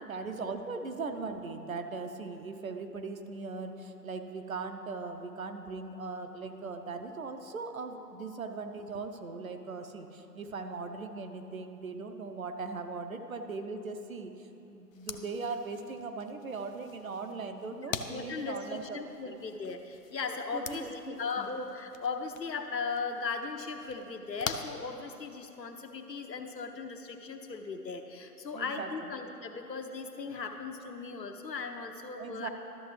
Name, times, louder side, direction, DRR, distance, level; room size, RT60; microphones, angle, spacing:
voice 1, 0.0-19.4 20.5-21.5 28.5-29.1 32.2-32.5, right 4 dB, 55° right, 6 dB, 0.8 m, -39 dB
sound 1, 14.9-25.5, left 6 dB, 55° left, 0.5 m, -45 dB
voice 2, 17.7-32.5, left 4 dB, 80° left, 5 dB, 0.9 m, -38 dB
12.5 x 6.6 x 3.2 m, 3.0 s
figure-of-eight pair, 150°, 49 cm